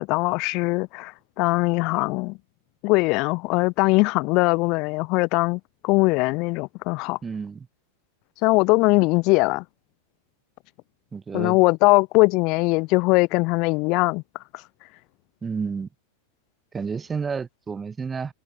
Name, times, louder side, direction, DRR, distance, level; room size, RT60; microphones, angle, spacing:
voice 1, 0.0-2.4 2.8-7.2 8.4-9.6 11.3-14.2, left 26 dB, 40° left, 2.7 m, -21 dB
voice 2, 7.2-7.7 11.1-11.6 15.4-15.9 16.7-18.3, right 5 dB, 15° right, 4.8 m, -30 dB
figure-of-eight pair, 90°, 0 cm